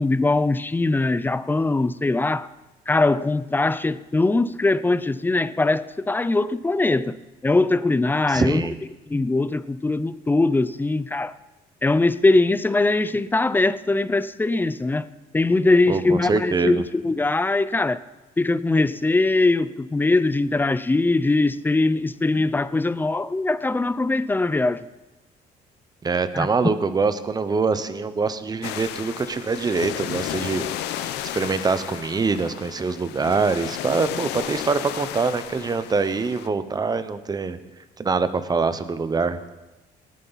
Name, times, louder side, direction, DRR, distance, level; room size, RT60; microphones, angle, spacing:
voice 1, 0.0-2.5 2.9-7.2 7.4-8.6 9.1-11.3 11.8-15.1 15.3-18.0 18.4-24.8 26.3-26.5, left 2 dB, 10° left, 0.5 m, -21 dB
voice 2, 8.3-8.8 15.9-16.8 26.0-37.6 38.0-39.4, right 4 dB, 25° right, 0.9 m, -24 dB
sound 1, 28.6-36.5, left 12 dB, 85° left, 0.7 m, -33 dB
19.0 x 9.3 x 4.1 m
cardioid pair, 110°, 17 cm